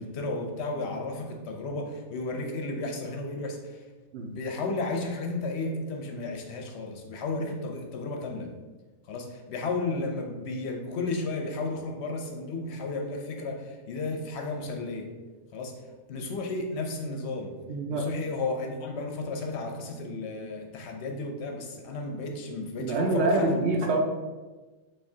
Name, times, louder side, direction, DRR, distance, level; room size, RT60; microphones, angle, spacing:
voice 1, 0.0-3.8 4.2-8.5 9.1-15.1 15.5-15.8 16.1-17.6 17.9-23.7, left 3 dB, 60° left, 3 dB, 0.8 m, -33 dB
voice 2, 17.7-18.1 22.8-24.0, right 2 dB, 65° right, 0 dB, 0.7 m, -26 dB
5.6 x 3.0 x 2.7 m, 1.2 s
omnidirectional pair, 1.5 m